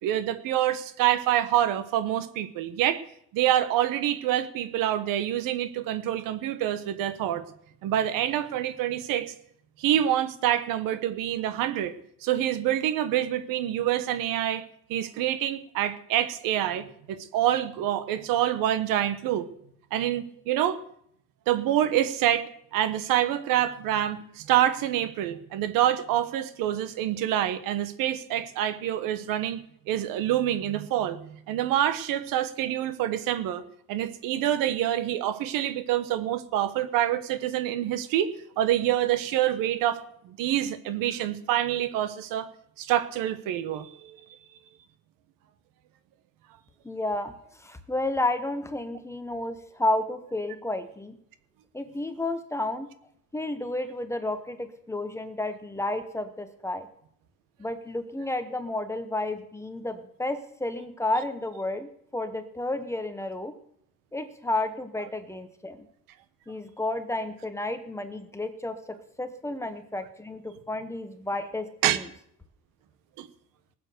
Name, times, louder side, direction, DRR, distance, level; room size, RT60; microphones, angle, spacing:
voice 1, 0.0-3.0 3.3-7.4 7.8-9.3 9.8-11.9 12.2-14.6 14.9-19.5 19.9-20.8 21.5-29.6 29.9-33.6 33.9-42.5 42.8-44.2 71.8-72.0 73.2-73.3, right 12 dB, 70° right, 12 dB, 1.3 m, -26 dB
voice 2, 46.8-47.3 47.6-51.2 51.7-52.9 53.3-56.9 57.6-63.5 64.1-65.9 66.5-72.0, left 2 dB, 10° left, 8 dB, 0.9 m, -31 dB
19.5 x 7.6 x 6.7 m, 0.69 s
cardioid pair, 160°, 34 cm